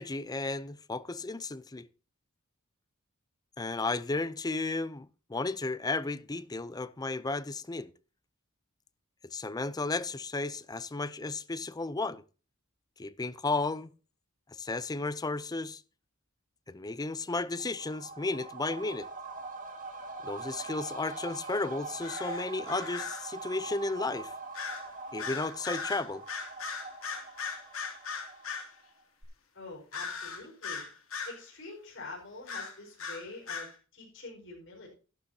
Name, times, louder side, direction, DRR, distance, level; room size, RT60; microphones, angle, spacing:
voice 1, 0.0-1.9 3.6-7.9 9.3-12.2 13.0-13.9 14.6-15.8 16.7-19.1 20.2-24.3 25.1-26.2, left 3 dB, 20° left, 0.5 m, -33 dB
sound 1, 17.4-28.9 29.2-29.3, right 3 dB, 40° right, 2.2 m, -43 dB
sound 2, 22.0-23.3 24.5-24.9 25.2-28.7 29.9-31.4 32.5-33.7, left 5 dB, 85° left, 2.7 m, -38 dB
voice 2, 29.5-30.9 31.2-34.9, left 3 dB, 60° left, 4.9 m, -46 dB
12.5 x 12.0 x 2.8 m
head